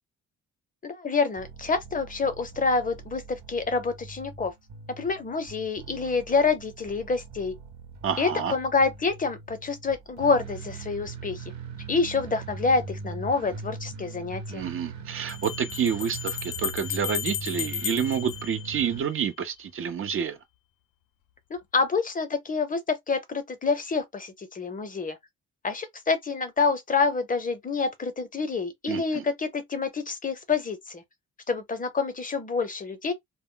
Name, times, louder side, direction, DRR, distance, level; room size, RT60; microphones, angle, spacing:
voice 1, 0.8-4.5 5.0-7.5 8.2-11.4 11.9-14.7 21.5-25.2 25.6-31.0 31.5-33.1, left 4 dB, 25° left, 0.6 m, -27 dB
sound 1, 1.4-19.0, right 4 dB, 65° right, 0.9 m, -41 dB
voice 2, 8.0-8.5 14.5-20.4 28.9-29.2, right 7 dB, 45° right, 0.5 m, -29 dB
Bell, 13.7-13.8 15.3-19.2, left 10 dB, 80° left, 0.5 m, -34 dB
2.1 x 2.0 x 3.7 m
cardioid pair, 90°, 30 cm